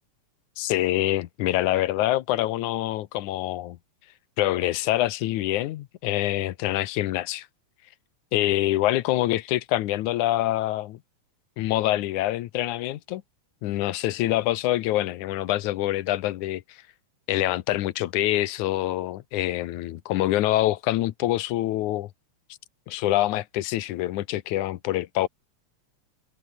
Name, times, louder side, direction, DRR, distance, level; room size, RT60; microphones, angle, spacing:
voice 1, 0.6-3.8 4.4-7.5 8.3-11.0 11.6-13.2 13.6-16.6 17.3-22.1 22.9-25.3, left 15 dB, 85° left, 2.3 m, -25 dB
omnidirectional pair, 3.4 m